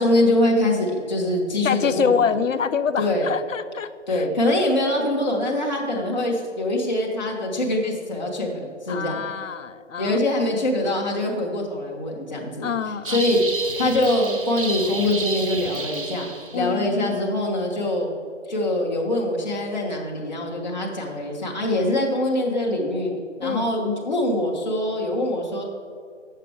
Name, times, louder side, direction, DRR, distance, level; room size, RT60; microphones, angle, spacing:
voice 1, 0.0-2.4 3.0-3.3 4.1-9.2 10.0-12.7 13.1-13.4 13.8-16.3 16.5-18.1 18.5-23.1 23.4-25.6, left 1 dB, 35° left, -2 dB, 1.1 m, -23 dB
voice 2, 1.6-4.2 8.9-10.2 12.6-13.2 16.5-17.3 23.4-23.7, left 6 dB, 80° left, 13 dB, 0.6 m, -26 dB
sound 1, 13.1-16.7, right 3 dB, 45° right, 0.7 m, -31 dB
8.3 x 6.7 x 4.8 m, 2.1 s
figure-of-eight pair, 165°, 38 cm